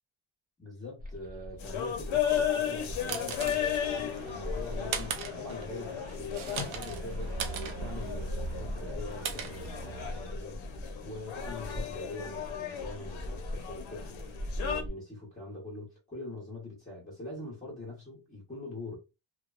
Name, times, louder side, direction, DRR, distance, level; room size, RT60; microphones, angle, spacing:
voice 1, 0.6-10.7 11.0-19.0, left 2 dB, 15° left, 0.8 m, -43 dB
sound 1, 1.0-14.9, left 1 dB, 20° right, 0.4 m, -41 dB
sound 2, 1.6-14.8, left 9 dB, 80° left, 0.7 m, -35 dB
sound 3, 2.6-10.3, right 7 dB, 80° right, 0.6 m, -40 dB
2.8 x 2.2 x 2.4 m
cardioid pair, 170°, 46 cm